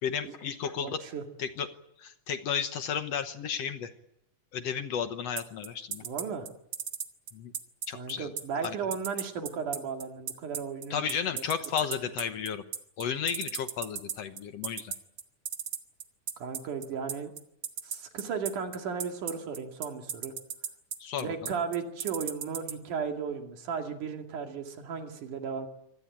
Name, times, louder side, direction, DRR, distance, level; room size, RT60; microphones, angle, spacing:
voice 1, 0.0-1.0 1.4-1.7 2.0-3.9 4.5-6.0 7.3-7.5 7.9-8.3 8.6-8.8 10.9-12.6 13.0-14.9 21.0-21.5, left 7 dB, 65° left, 9 dB, 2.0 m, -33 dB
voice 2, 0.8-1.2 6.0-6.5 7.9-11.0 11.3-11.4 16.4-17.3 17.8-20.3 21.2-25.7, right 6 dB, 80° right, 4 dB, 3.8 m, -35 dB
sound 1, 5.4-22.7, right 8 dB, 55° right, 1.9 m, -35 dB
25.0 x 18.0 x 8.9 m, 0.81 s
omnidirectional pair, 3.5 m